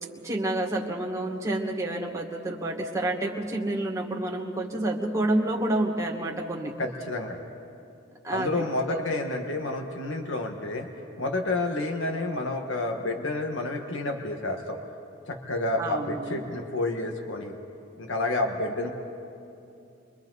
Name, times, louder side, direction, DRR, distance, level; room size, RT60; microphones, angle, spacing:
voice 1, 0.2-6.7 8.2-9.0 15.8-16.5, right 1 dB, 15° right, -1 dB, 1.9 m, -29 dB
voice 2, 6.8-7.4 8.3-10.9 11.2-14.8 15.3-17.5 18.0-18.9, left 2 dB, 85° left, 3 dB, 1.5 m, -29 dB
29.5 x 24.0 x 4.1 m, 2.7 s
head